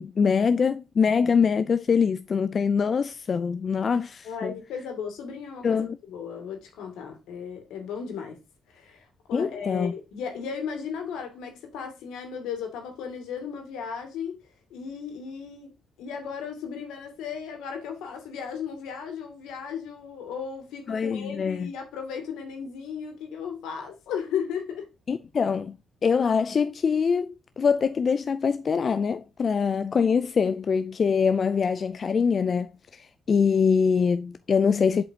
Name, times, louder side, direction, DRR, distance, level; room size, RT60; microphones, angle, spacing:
voice 1, 0.0-4.5 5.6-6.0 9.3-9.9 20.9-21.7 25.1-25.8 26.0-35.0, left 6 dB, 45° left, 0.4 m, -24 dB
voice 2, 4.2-8.4 8.7-14.4 14.7-15.7 16.0-24.9, left 7 dB, 90° left, 2.4 m, -35 dB
7.5 x 5.2 x 2.9 m
cardioid pair, 90°, 0 cm